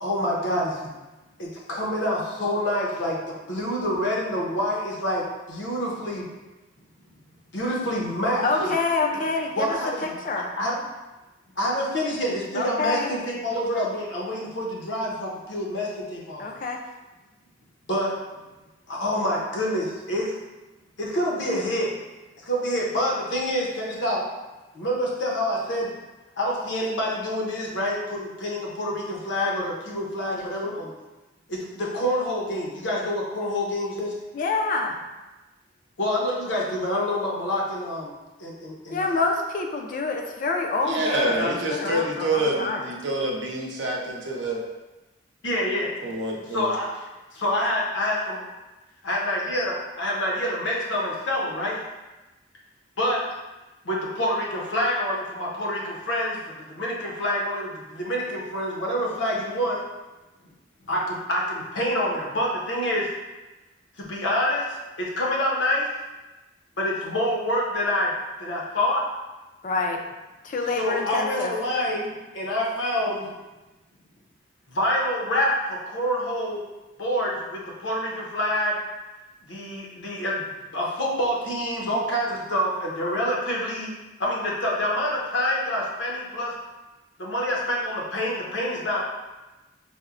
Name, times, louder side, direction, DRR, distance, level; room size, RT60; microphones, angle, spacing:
voice 1, 0.0-0.9 1.4-6.3 7.5-8.7 9.0-9.1 9.6-10.8 11.6-16.5 17.9-18.2 18.9-20.3 21.0-22.0 22.4-24.3 24.7-25.9 26.4-30.9 31.5-34.1 36.0-38.1 38.4-39.2 41.8-41.9 45.4-45.9 46.5-47.1 47.3-48.4 49.0-51.8 53.0-53.2 53.8-59.8 60.8-63.1 64.0-65.9 66.8-68.1 68.4-69.1 70.8-73.3 74.7-76.6 77.0-78.8 79.5-83.9 84.2-86.5 87.2-89.0, left 1 dB, 75° left, -3 dB, 0.7 m, -27 dB
voice 2, 8.4-9.7 10.0-10.5 12.5-13.1 16.4-16.8 34.3-35.0 38.9-42.8 69.6-70.0 70.4-71.5, left 3 dB, 45° left, 2 dB, 0.3 m, -27 dB
voice 3, 40.8-44.6 46.0-46.7, right 1 dB, 75° right, -1 dB, 0.6 m, -27 dB
4.2 x 2.0 x 2.4 m, 1.1 s
head